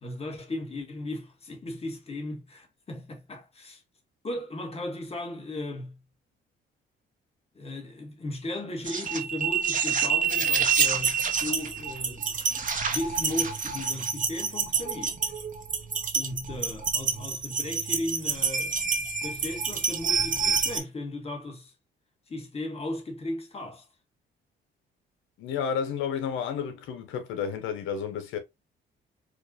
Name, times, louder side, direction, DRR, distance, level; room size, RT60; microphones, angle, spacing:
voice 1, 0.0-3.8 4.2-6.0 7.5-12.4 12.9-15.3 16.1-18.8 19.2-21.7 22.3-23.8, left 1 dB, 30° left, 1.5 m, -36 dB
sound 1, 8.9-20.8, right 6 dB, 40° right, 1.0 m, -27 dB
voice 2, 25.4-28.4, left 7 dB, 85° left, 0.9 m, -31 dB
4.6 x 2.5 x 2.7 m
cardioid pair, 90°, 20 cm